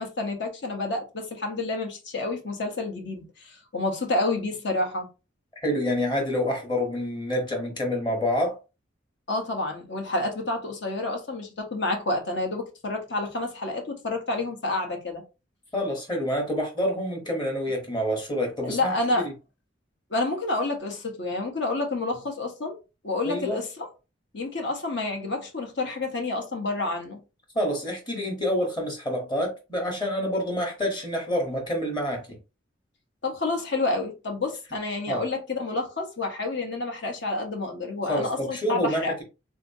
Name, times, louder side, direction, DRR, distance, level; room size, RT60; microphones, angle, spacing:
voice 1, 0.0-5.1 9.3-15.2 18.6-19.3 20.1-22.8 23.0-23.9 24.3-27.2 33.2-39.1, left 2 dB, 65° left, 0.9 m, -29 dB
voice 2, 5.6-8.6 15.7-19.3 23.2-23.6 27.5-32.2 35.1-35.2 38.1-39.2, equal, 25° left, 1.0 m, -27 dB
3.5 x 2.8 x 2.7 m
head